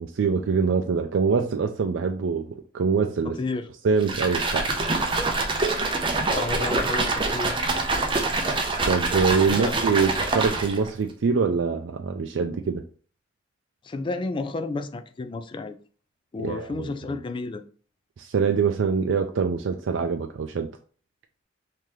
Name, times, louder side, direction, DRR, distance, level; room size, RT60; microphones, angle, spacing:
voice 1, 0.0-3.4 3.8-4.7 8.8-12.8 16.4-16.9 18.2-20.7, right 5 dB, 70° right, 0.4 m, -24 dB
voice 2, 3.3-3.7 6.3-7.6 9.5-9.7 13.8-15.8 16.3-17.6, left 3 dB, 25° left, 0.3 m, -31 dB
sound 1, 4.0-10.9, right 3 dB, 25° right, 0.6 m, -25 dB
3.7 x 2.8 x 3.1 m
head